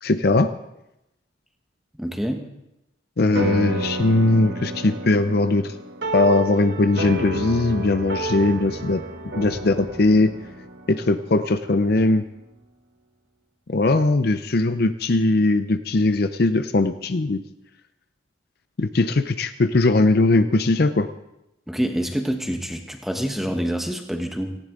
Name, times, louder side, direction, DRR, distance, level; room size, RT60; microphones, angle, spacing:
voice 1, 0.0-0.5 3.2-5.7 6.1-9.0 9.3-10.3 10.9-12.2 13.7-17.4 18.8-21.1, left 2 dB, 50° left, 10 dB, 0.6 m, -20 dB
voice 2, 2.0-2.5 21.7-24.6, equal, ahead, 4 dB, 1.2 m, -26 dB
sound 1, 3.3-12.1, right 1 dB, 60° right, 1.5 m, -31 dB
18.0 x 15.5 x 3.8 m, 0.88 s
head